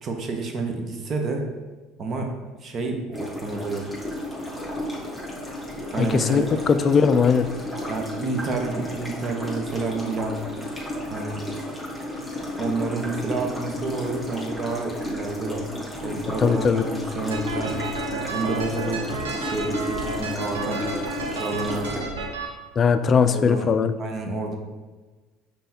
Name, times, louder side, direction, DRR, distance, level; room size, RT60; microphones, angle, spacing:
voice 1, 0.0-1.5 2.0-2.3 2.6-4.0 5.9-6.6 7.9-10.4 11.1-11.4 12.6-15.6 16.0-17.8 18.3-19.0 19.4-20.9 21.3-22.1 23.2-23.7 24.0-24.6, right 3 dB, 45° right, 3 dB, 0.8 m, -29 dB
sound 1, 3.1-22.0, left 1 dB, 5° right, 1.3 m, -33 dB
voice 2, 6.0-7.5 16.4-16.8 22.8-23.9, left 6 dB, 40° left, 11 dB, 0.3 m, -19 dB
sound 2, 17.3-22.5, right 3 dB, 90° right, 0.6 m, -31 dB
5.4 x 3.3 x 2.8 m, 1.3 s
hypercardioid pair, 80°, 0 cm